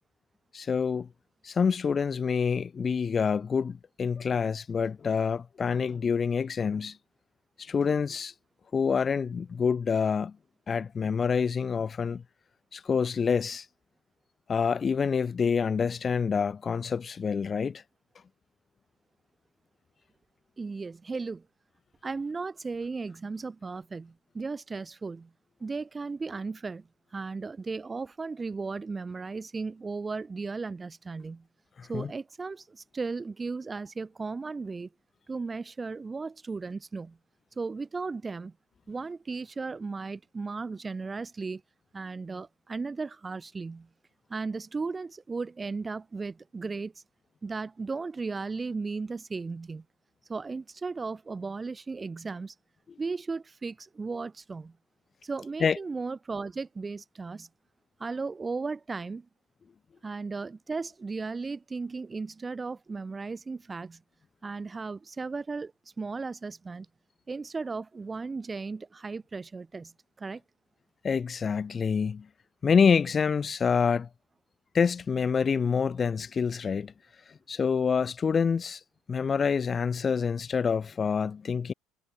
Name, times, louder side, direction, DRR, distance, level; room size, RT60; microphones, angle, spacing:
voice 1, 0.5-1.1 1.4-7.0 7.6-8.3 8.7-10.3 10.7-12.2 12.7-13.7 14.5-17.8 31.8-32.1 55.6-55.8 71.0-72.3 72.6-74.1 74.7-76.9 77.3-78.8 79.1-81.7, left 6 dB, 35° left, 0.4 m, -27 dB
voice 2, 20.6-21.5 22.0-25.3 25.6-26.9 27.1-31.5 31.9-34.9 35.3-37.2 37.6-38.5 38.9-41.6 41.9-43.9 44.3-46.9 47.4-49.8 50.3-52.5 53.0-54.7 55.2-57.5 58.0-59.3 60.0-64.0 64.4-65.7 66.0-66.9 67.3-69.9 70.2-70.4, right 4 dB, 25° right, 1.1 m, -36 dB
figure-of-eight pair, 60°, 0 cm